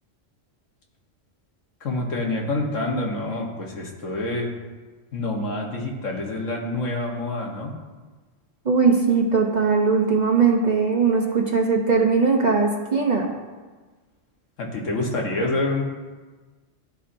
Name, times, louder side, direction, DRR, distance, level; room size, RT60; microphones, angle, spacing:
voice 1, 1.8-4.5 5.1-7.8 14.6-15.8, left 2 dB, 90° left, 0 dB, 1.5 m, -27 dB
voice 2, 8.6-13.3, right 5 dB, 45° right, 1 dB, 0.7 m, -20 dB
12.0 x 4.1 x 2.6 m, 1.3 s
omnidirectional pair, 1.3 m